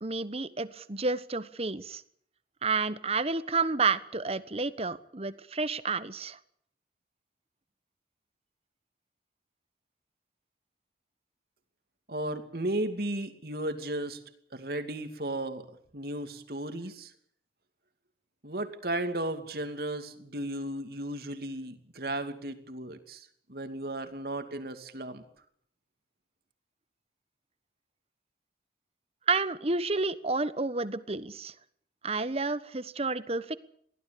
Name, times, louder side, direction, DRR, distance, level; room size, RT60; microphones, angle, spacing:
voice 1, 0.0-2.0 2.6-6.4 29.3-31.5 32.0-33.6, right 4 dB, 35° right, 14 dB, 1.2 m, -30 dB
voice 2, 12.1-14.2 14.5-17.1 18.4-25.2, right 1 dB, 60° right, 8 dB, 2.7 m, -35 dB
23.0 x 16.0 x 8.6 m, 0.64 s
head